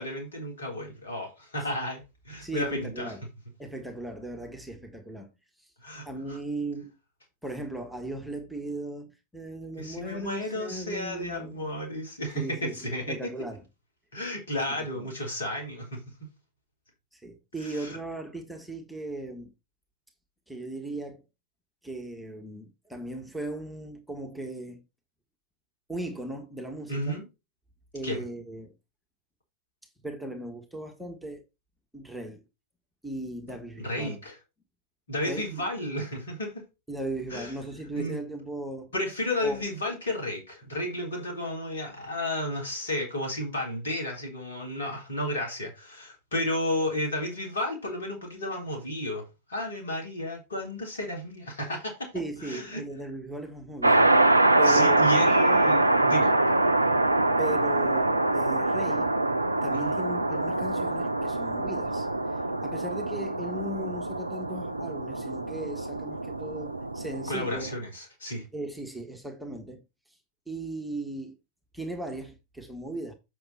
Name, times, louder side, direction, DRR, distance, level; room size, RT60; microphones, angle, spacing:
voice 1, 0.0-3.1 5.8-6.4 9.8-13.3 14.1-16.3 17.6-18.0 26.9-27.3 28.0-28.2 33.5-34.4 35.1-36.6 37.3-37.5 37.9-38.2 38.9-52.1 52.4-52.8 54.6-56.3 59.7-60.0 67.3-68.5, left 1 dB, 70° left, 3.8 m, -33 dB
voice 2, 2.4-3.2 3.6-5.3 5.6-5.7 6.0-6.9 7.4-11.8 12.3-13.6 14.9-15.1 17.1-19.5 20.5-21.2 21.8-24.8 25.9-27.2 27.9-28.7 30.0-31.4 31.9-32.4 33.0-34.2 35.2-35.6 36.9-38.9 39.4-39.6 52.1-54.1 54.6-55.3 57.4-59.1 59.6-62.1 62.6-67.6 68.5-69.8 70.5-71.3 71.7-73.1, right 2 dB, 5° right, 1.5 m, -37 dB
sound 1, 53.8-67.8, right 2 dB, 85° right, 0.5 m, -24 dB
7.7 x 6.1 x 4.2 m
figure-of-eight pair, 90°, 0 cm